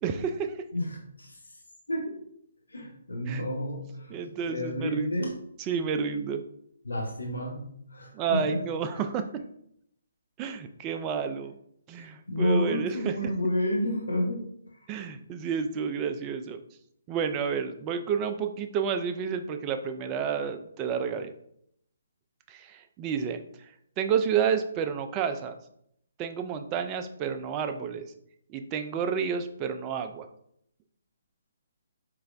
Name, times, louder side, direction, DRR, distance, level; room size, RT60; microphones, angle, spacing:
voice 1, 0.0-0.6 3.3-3.4 4.1-5.3 5.7-6.4 8.1-9.2 10.4-11.5 11.9-13.1 14.9-16.6 17.1-21.3 22.5-23.4 24.0-25.6 26.2-28.0 28.5-30.3, right 7 dB, 20° right, 7 dB, 0.3 m, -30 dB
voice 2, 0.7-1.5 1.9-2.2 2.7-5.4 6.8-8.6 12.0-14.4, left 1 dB, 75° left, -1 dB, 1.0 m, -30 dB
4.8 x 3.2 x 2.4 m, 0.72 s
figure-of-eight pair, 135°, 0 cm